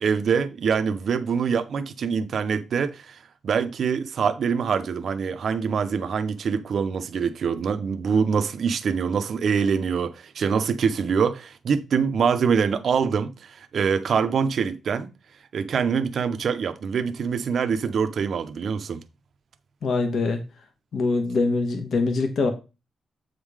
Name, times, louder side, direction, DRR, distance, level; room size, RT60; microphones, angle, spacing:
voice 1, 0.0-3.2 3.4-15.1 15.5-19.0, right 6 dB, 50° right, 0.6 m, -24 dB
voice 2, 19.8-20.4 20.9-22.5, left 3 dB, 60° left, 1.1 m, -23 dB
8.1 x 3.6 x 4.8 m
wide cardioid pair, 165°, 0 cm